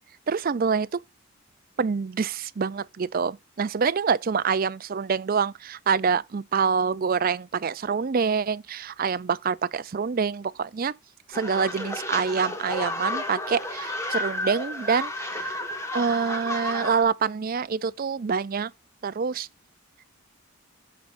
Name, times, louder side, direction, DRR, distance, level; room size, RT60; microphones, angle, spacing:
voice 1, 0.3-1.0 1.8-10.9 11.3-15.6 15.9-18.7 19.0-19.5, right 5 dB, 40° right, 0.4 m, -26 dB
sound 1, 11.3-17.0, left 1 dB, 15° left, 1.6 m, -32 dB
15.0 x 6.2 x 2.6 m
head